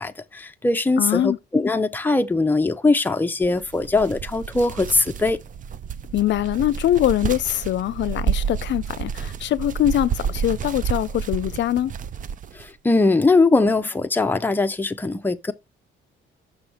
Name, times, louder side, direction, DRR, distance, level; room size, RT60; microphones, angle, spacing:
voice 1, 0.0-5.4 12.5-15.5, left 3 dB, 10° left, 0.6 m, -21 dB
voice 2, 1.0-1.4 6.1-11.9, left 12 dB, 65° left, 0.5 m, -23 dB
sound 1, 3.4-12.7, right 7 dB, 40° right, 0.4 m, -30 dB
6.1 x 3.3 x 5.6 m
cardioid pair, 90°, 20 cm